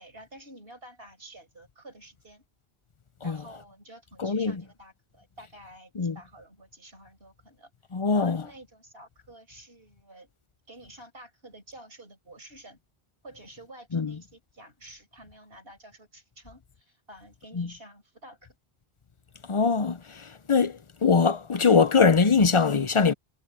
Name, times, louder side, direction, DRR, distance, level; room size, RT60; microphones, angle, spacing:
voice 1, 0.0-2.4 3.2-7.7 8.1-10.3 10.7-12.8 13.2-18.5, right 1 dB, 70° right, 7.9 m, -49 dB
voice 2, 4.2-4.6 6.0-6.2 7.9-8.4 13.9-14.1 17.5-17.7 19.5-23.1, left 5 dB, 35° left, 0.7 m, -22 dB
omnidirectional pair, 1.0 m